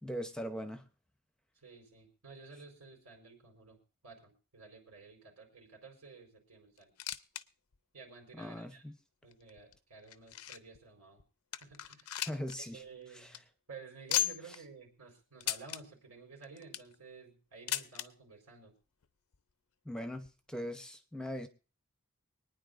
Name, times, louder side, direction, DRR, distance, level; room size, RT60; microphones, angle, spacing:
voice 1, 0.0-0.8 8.3-8.9 12.2-12.8 13.1-13.3 19.8-21.5, equal, 5° left, 0.8 m, -40 dB
voice 2, 1.6-3.8 4.0-6.9 7.9-8.8 9.2-11.2 11.6-12.1 12.6-13.4 13.7-18.7, right 4 dB, 85° right, 4.4 m, -53 dB
sound 1, 6.8-7.4 7.7-7.8 8.5-8.6 9.3-10.8 11.2-11.3 11.5-12.6 12.9-13.0 13.2-13.4 14.1-14.6 15.4-15.8 16.4-16.9 17.7-18.1 19.0-19.1 19.3-19.4 20.2-20.3, left 13 dB, 70° left, 0.6 m, -36 dB
24.5 x 9.5 x 2.5 m
head